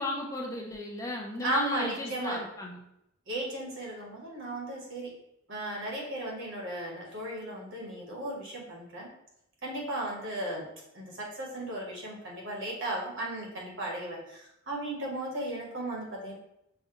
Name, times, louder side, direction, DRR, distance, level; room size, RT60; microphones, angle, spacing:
voice 1, 0.0-2.8, left 1 dB, 15° left, -1 dB, 0.5 m, -35 dB
voice 2, 1.4-2.4 3.3-5.1 5.5-9.1 9.6-10.7 10.9-16.3, right 1 dB, 65° right, -2 dB, 1.3 m, -35 dB
5.6 x 2.2 x 2.8 m, 0.82 s
head